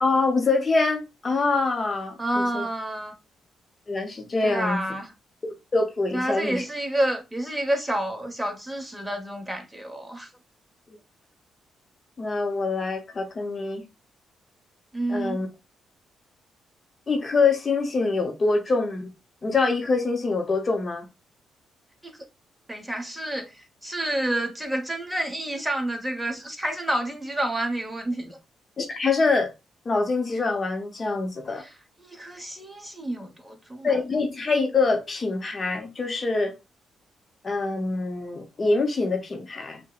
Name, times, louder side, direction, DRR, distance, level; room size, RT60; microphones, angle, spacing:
voice 1, 0.0-2.6 3.9-4.8 5.7-6.6 10.9-11.0 12.2-13.8 15.1-15.5 17.1-19.1 19.4-21.1 28.8-29.5 29.9-31.6 33.8-36.5 37.4-39.8, left 3 dB, 40° left, 0.7 m, -25 dB
voice 2, 2.2-3.1 4.4-5.1 6.1-10.3 14.9-15.4 22.0-22.1 22.7-28.4 31.5-31.7 32.0-33.9, right 1 dB, 10° right, 1.1 m, -29 dB
5.5 x 2.1 x 2.3 m
cardioid pair, 70°, 0 cm